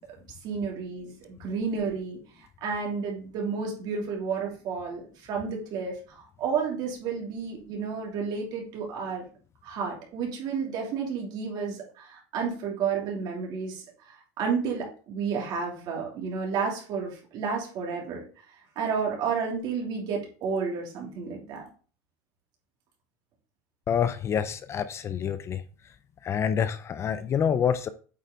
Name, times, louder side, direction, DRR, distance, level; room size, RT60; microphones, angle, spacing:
voice 1, 0.4-2.2 2.6-9.2 9.6-18.2 18.7-21.6, right 5 dB, 50° right, -1 dB, 3.1 m, -31 dB
voice 2, 23.9-25.6 26.2-27.9, left 8 dB, 30° left, 12 dB, 0.5 m, -27 dB
8.5 x 4.7 x 4.0 m, 0.39 s
supercardioid pair, 130°, 9 cm